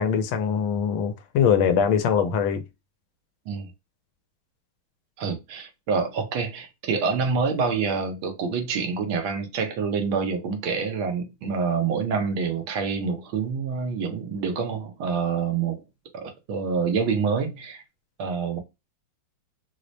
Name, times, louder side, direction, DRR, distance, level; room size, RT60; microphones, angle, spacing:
voice 1, 0.0-2.6, left 7 dB, 85° left, 1.4 m, -22 dB
voice 2, 5.2-15.8 16.2-17.8 18.2-18.6, right 5 dB, 80° right, 1.7 m, -27 dB
4.7 x 2.1 x 2.5 m
omnidirectional pair, 2.2 m